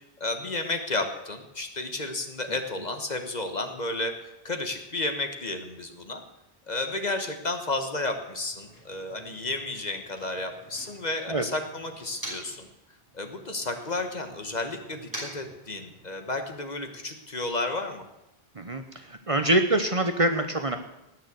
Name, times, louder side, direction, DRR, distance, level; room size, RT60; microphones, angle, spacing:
voice 1, 0.2-4.1 4.4-6.2 6.7-12.7 13.1-18.0, left 2 dB, 45° left, 6 dB, 1.4 m, -32 dB
Motor vehicle (road), 8.2-12.7 13.0-16.3, right 1 dB, 20° right, 5.2 m, -45 dB
voice 2, 18.6-20.8, right 1 dB, 35° right, 7 dB, 0.9 m, -25 dB
18.5 x 6.7 x 7.9 m, 0.91 s
omnidirectional pair, 1.0 m